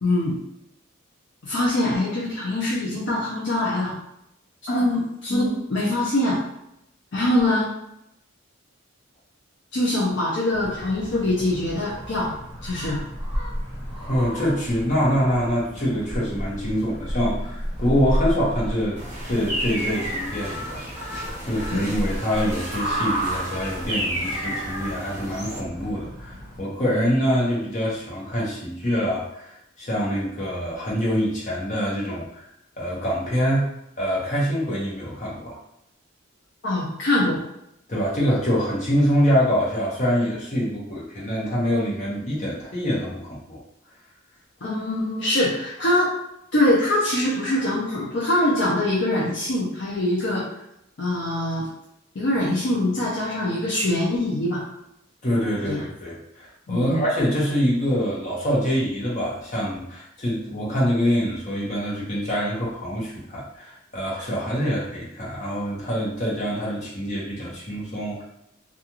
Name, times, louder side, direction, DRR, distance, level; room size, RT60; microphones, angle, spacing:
voice 1, 0.0-0.4 1.4-4.0 4.6-6.4 7.1-7.7 9.7-12.3 12.6-13.0 21.7-21.9 36.6-37.4 44.6-46.1 46.5-50.4 51.0-51.6 52.2-54.6 55.7-55.8 56.7-57.0, left 1 dB, 55° left, -6 dB, 0.6 m, -23 dB
sound 1, 10.5-26.6, equal, 5° right, 0.9 m, -33 dB
voice 2, 14.0-29.5 29.8-32.4 32.8-33.7 34.0-35.6 37.9-43.6 55.2-68.2, equal, 35° left, -6 dB, 0.9 m, -25 dB
sound 2, 19.0-25.6, right 1 dB, 35° right, 0.9 m, -31 dB
2.4 x 2.4 x 2.9 m, 0.80 s
head